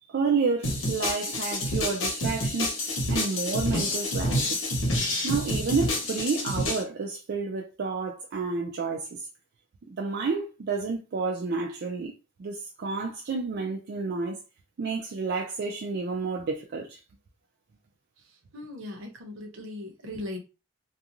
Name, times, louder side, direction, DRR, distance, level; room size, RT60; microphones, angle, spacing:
voice 1, 0.0-2.8 3.1-4.6 5.2-9.3 10.0-12.1 12.4-14.4 14.8-17.0, right 4 dB, 55° right, 0.4 m, -30 dB
sound 1, 0.6-6.8, left 1 dB, 80° left, 0.9 m, -28 dB
voice 2, 18.5-20.4, left 1 dB, 75° right, 0.9 m, -38 dB
2.4 x 2.3 x 2.9 m
head